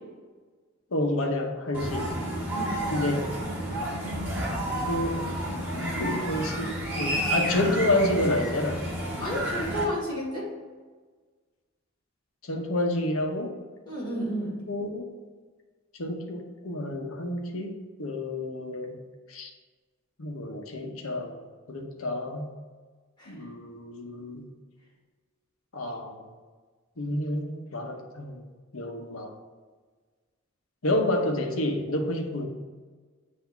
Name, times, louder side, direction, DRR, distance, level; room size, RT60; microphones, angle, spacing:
voice 1, 0.9-2.1 2.9-3.3 4.9-8.9 12.4-13.6 14.7-15.1 15.9-19.0 19.3-19.5 20.2-21.4 21.7-22.5 23.3-24.5 25.7-26.2 27.0-28.4 28.7-29.3 30.8-32.4, left 1 dB, 90° left, 3 dB, 0.9 m, -29 dB
sound 1, 1.7-9.8, right 1 dB, 10° right, 1.9 m, -31 dB
voice 2, 9.2-10.5 13.9-14.6 23.2-23.3, equal, 20° left, -6 dB, 2.0 m, -31 dB
8.0 x 2.8 x 5.7 m, 1.4 s
head